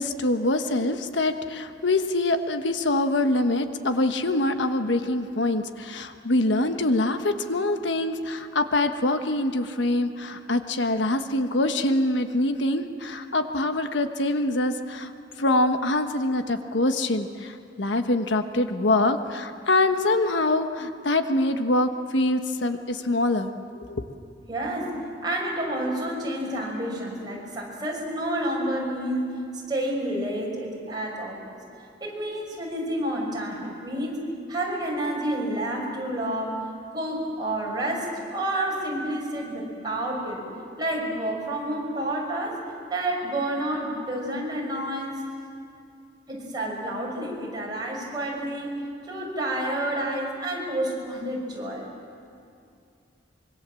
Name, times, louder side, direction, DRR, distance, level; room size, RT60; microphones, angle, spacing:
voice 1, 0.0-15.1 15.4-24.1, left 2 dB, 85° left, 7 dB, 1.3 m, -24 dB
voice 2, 24.5-25.0 25.2-29.4 29.7-31.6 32.0-34.2 34.5-36.6 36.9-40.5 40.8-42.6 42.9-45.2 46.3-48.7 49.1-51.8, right 1 dB, 25° right, -2 dB, 6.2 m, -29 dB
25.5 x 23.5 x 7.6 m, 2.5 s
head